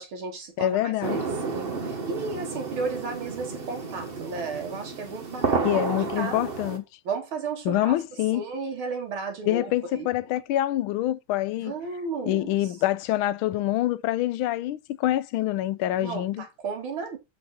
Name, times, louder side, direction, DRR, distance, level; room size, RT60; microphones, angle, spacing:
voice 1, 0.0-6.4 7.0-8.0 8.3-10.1 11.6-12.5 16.0-17.2, right 4 dB, 80° right, 2.5 m, -34 dB
voice 2, 0.6-1.2 5.6-6.8 7.6-8.4 9.5-11.7 12.2-16.4, left 14 dB, 85° left, 1.5 m, -26 dB
sound 1, 1.0-6.8, right 4 dB, 35° right, 1.1 m, -31 dB
7.8 x 5.1 x 3.9 m
omnidirectional pair, 2.2 m